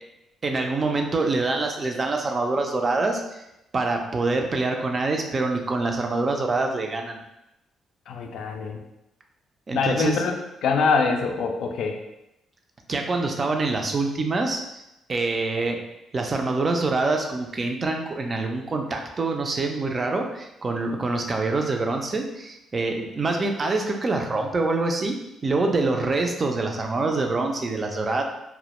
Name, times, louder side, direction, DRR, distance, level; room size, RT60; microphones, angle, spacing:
voice 1, 0.4-3.4 3.7-7.2 9.7-10.2 12.9-14.8 15.1-15.8 16.1-25.2 25.4-28.2, right 3 dB, 35° right, 3 dB, 0.3 m, -25 dB
voice 2, 8.1-8.8 9.7-11.9, left 4 dB, 75° left, 3 dB, 0.3 m, -24 dB
2.1 x 2.0 x 2.9 m, 0.89 s
cardioid pair, 90°, 0 cm